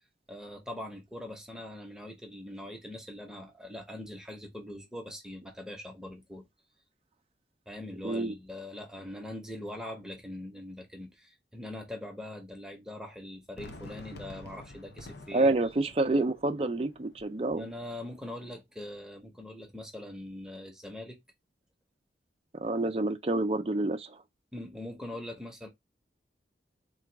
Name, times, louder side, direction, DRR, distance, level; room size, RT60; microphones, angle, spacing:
voice 1, 0.3-6.4 7.7-15.5 17.6-21.2 24.5-25.7, left 1 dB, 5° right, 0.9 m, -42 dB
voice 2, 8.0-8.3 15.3-17.6 22.6-24.2, right 2 dB, 35° right, 0.5 m, -28 dB
Fireworks, 13.6-18.6, left 2 dB, 65° left, 0.7 m, -50 dB
3.8 x 2.5 x 4.5 m
head